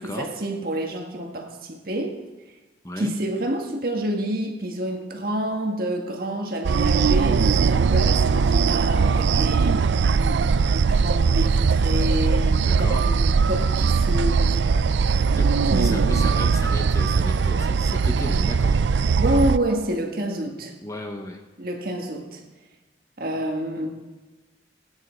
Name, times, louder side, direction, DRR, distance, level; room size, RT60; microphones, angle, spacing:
voice 1, 0.0-2.2 3.0-9.9 10.1-15.2 15.7-16.0 19.2-20.7 21.6-22.4 23.2-23.9, right 1 dB, 50° right, 2 dB, 1.7 m, -28 dB
sound 1, 6.6-19.6, right 5 dB, 70° right, 0.4 m, -20 dB
voice 2, 12.6-13.0 15.3-18.8 20.8-21.4, left 1 dB, 15° left, 4 dB, 0.9 m, -34 dB
18.5 x 9.8 x 4.5 m, 1.2 s
head